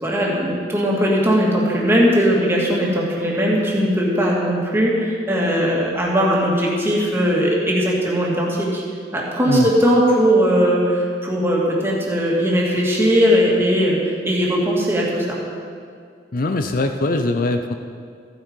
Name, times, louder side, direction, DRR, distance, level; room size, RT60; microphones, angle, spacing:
voice 1, 0.0-8.8 9.1-15.4, equal, 15° right, -4 dB, 2.3 m, -19 dB
voice 2, 16.3-17.7, left 2 dB, 50° left, 6 dB, 0.6 m, -21 dB
14.5 x 9.2 x 5.4 m, 2.2 s
head